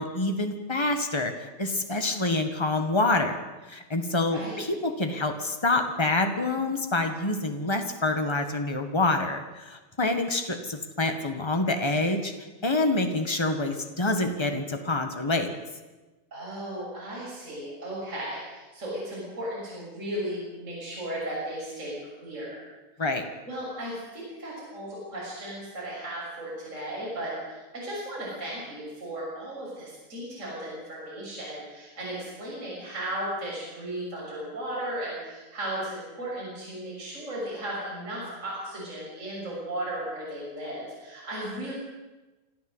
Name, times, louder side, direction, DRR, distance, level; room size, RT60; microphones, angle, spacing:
voice 1, 0.0-3.4 3.7-12.3 12.6-15.5 23.0-23.2, left 2 dB, 30° left, 6 dB, 0.5 m, -27 dB
voice 2, 4.3-4.7 16.3-22.6 23.5-41.7, right 1 dB, 25° right, -6 dB, 7.0 m, -35 dB
26.0 x 14.0 x 8.0 m, 1.2 s
omnidirectional pair, 3.5 m